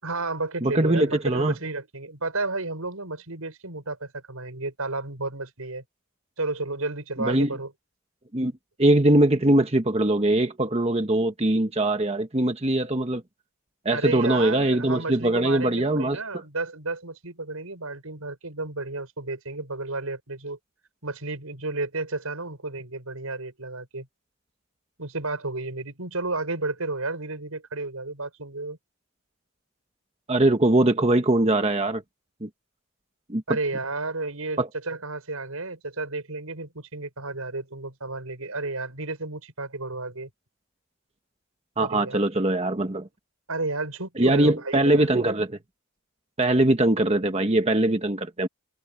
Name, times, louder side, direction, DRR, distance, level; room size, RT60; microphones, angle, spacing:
voice 1, 0.0-5.8 6.4-7.7 13.9-20.6 21.0-24.1 25.0-28.8 33.5-40.3 41.8-42.2 43.5-45.1, right 3 dB, 85° right, 6.0 m, -32 dB
voice 2, 0.6-1.5 7.2-7.5 8.3-8.5 8.8-13.2 13.8-16.2 30.3-32.0 32.4-32.5 33.3-33.4 34.6-34.7 41.8-43.1 44.2-45.6 46.4-48.5, right 1 dB, 30° right, 1.2 m, -22 dB
head